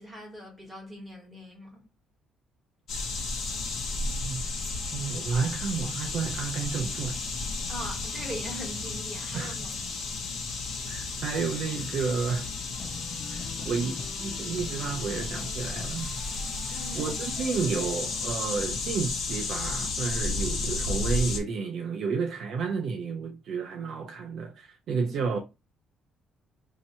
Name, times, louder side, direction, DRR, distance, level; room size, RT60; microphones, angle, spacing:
voice 1, 0.0-1.9 7.6-9.8 16.7-17.4 25.0-25.4, equal, 5° right, 1.6 m, -41 dB
sound 1, 2.9-21.4, left 3 dB, 55° left, 1.0 m, -33 dB
voice 2, 4.9-7.2 9.3-9.6 10.9-12.5 13.3-16.1 16.7-25.4, right 5 dB, 50° right, 0.6 m, -31 dB
sound 2, 12.7-18.0, left 5 dB, 35° left, 0.4 m, -45 dB
2.9 x 2.7 x 4.2 m
cardioid pair, 175°, 0 cm